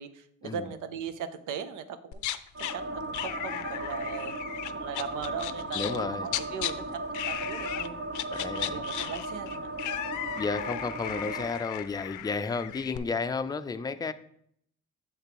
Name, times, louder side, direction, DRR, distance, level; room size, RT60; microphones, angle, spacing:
voice 1, 0.0-2.3 2.6-4.3 4.7-8.2 8.7-9.7, right 7 dB, 90° right, 11 dB, 0.7 m, -39 dB
sound 1, 2.1-2.7 3.1-6.7 7.1-7.9 8.1-13.0, left 13 dB, 80° left, 0.5 m, -36 dB
sound 2, 2.5-11.5, right 2 dB, 45° right, 0.9 m, -36 dB
voice 2, 5.7-6.3 8.3-8.8 10.3-14.1, left 4 dB, 15° left, 10 dB, 0.4 m, -32 dB
7.2 x 6.6 x 3.0 m, 0.69 s
cardioid pair, 90°, 30 cm